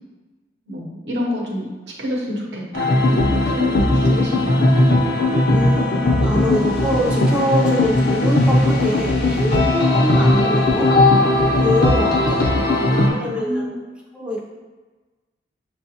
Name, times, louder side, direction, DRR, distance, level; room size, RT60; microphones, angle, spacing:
voice 1, 0.7-1.7 2.0-4.8 12.9-13.8, left 1 dB, 70° right, -2 dB, 0.9 m, -28 dB
sound 1, 2.7-13.1, left 2 dB, 55° left, 0.6 m, -17 dB
voice 2, 5.5-10.9 11.5-12.5 13.1-13.8 14.1-14.4, equal, 5° right, -4 dB, 0.5 m, -24 dB
6.4 x 2.3 x 2.7 m, 1.3 s
head